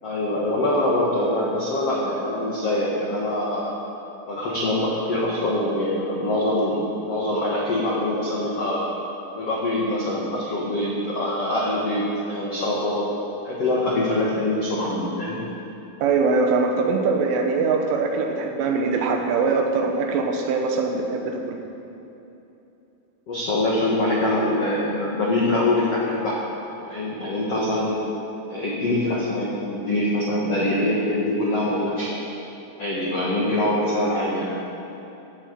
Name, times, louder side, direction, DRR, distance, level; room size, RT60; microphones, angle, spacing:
voice 1, 0.0-3.7 4.3-8.9 9.3-13.1 13.4-15.4 23.3-26.3 26.8-28.0 28.5-32.1 32.8-34.6, left 1 dB, 75° left, -5 dB, 1.4 m, -24 dB
voice 2, 16.0-21.6, right 4 dB, 75° right, 3 dB, 3.5 m, -22 dB
16.5 x 8.9 x 8.1 m, 2.9 s
omnidirectional pair, 6.0 m